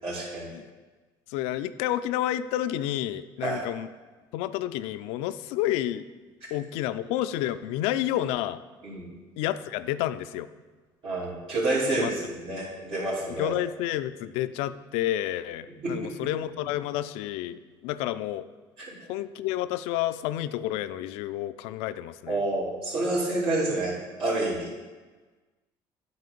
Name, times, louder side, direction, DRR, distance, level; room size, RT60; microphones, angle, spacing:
voice 1, 0.0-0.5 3.4-3.6 8.8-9.0 11.0-13.5 15.8-16.3 22.3-24.7, right 2 dB, 65° right, -9 dB, 2.7 m, -28 dB
voice 2, 1.3-3.9 4.3-6.1 6.5-8.6 9.4-10.5 11.9-12.1 13.4-18.5 19.1-22.4, left 13 dB, 85° left, 13 dB, 0.4 m, -30 dB
8.4 x 4.3 x 6.8 m, 1.3 s
supercardioid pair, 90°, 10 cm